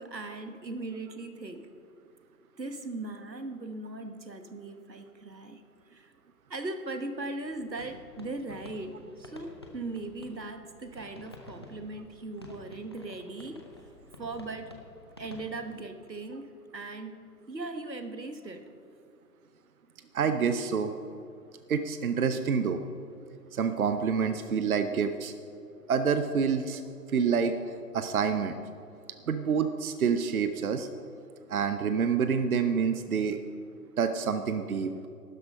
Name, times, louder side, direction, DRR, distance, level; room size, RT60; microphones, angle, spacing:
voice 1, 0.0-1.7 2.6-5.6 5.9-6.1 6.5-13.6 14.2-14.8 15.2-18.7, right 2 dB, 85° right, 8 dB, 1.3 m, -39 dB
sound 1, 7.1-15.8, left 2 dB, 15° left, 0.5 m, -51 dB
voice 2, 20.1-20.9 21.7-22.8 23.5-25.3 25.9-26.8 27.1-27.5 27.9-28.6 29.3-30.9 31.5-33.4 34.0-34.9, right 6 dB, 60° right, 9 dB, 0.8 m, -27 dB
12.5 x 10.5 x 5.4 m, 2.5 s
figure-of-eight pair, 135°, 49 cm